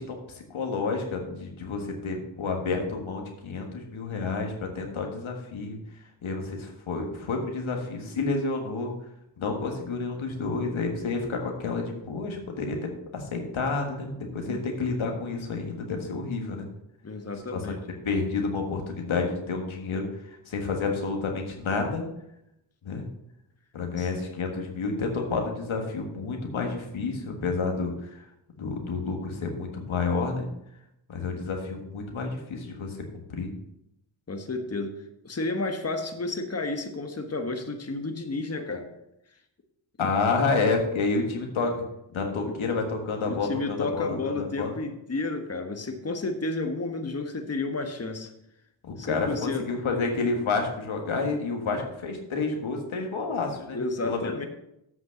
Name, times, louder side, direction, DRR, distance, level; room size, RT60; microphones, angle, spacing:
voice 1, 0.0-5.8 6.2-8.9 9.4-16.6 17.5-17.7 18.0-20.1 20.5-22.0 22.8-23.1 23.7-28.2 28.6-30.5 31.1-33.0 33.3-33.5 40.0-41.8 42.1-44.0 44.4-44.7 48.8-54.2, left 4 dB, 85° left, 2 dB, 1.6 m, -29 dB
voice 2, 17.0-17.8 24.0-24.1 34.3-35.0 35.2-38.9 40.0-40.1 42.5-42.6 43.3-48.3 49.0-49.7 53.7-54.5, left 3 dB, 30° left, 5 dB, 1.2 m, -31 dB
8.0 x 5.9 x 5.9 m, 0.81 s
cardioid pair, 50°, 46 cm